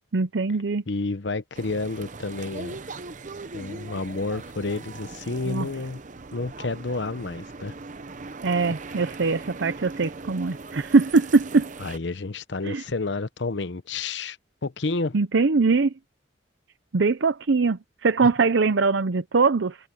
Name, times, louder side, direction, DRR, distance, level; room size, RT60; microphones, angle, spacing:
voice 1, 0.1-0.8 5.4-5.7 8.4-11.7 12.6-12.8 15.1-15.9 16.9-19.8, right 4 dB, 75° right, 0.7 m, -22 dB
voice 2, 0.9-2.8 3.5-6.0 6.3-7.7 8.7-8.8 11.8-14.4 14.6-15.1, left 3 dB, 70° left, 0.9 m, -30 dB
sound 1, 1.5-12.0, right 3 dB, 45° right, 0.8 m, -40 dB
head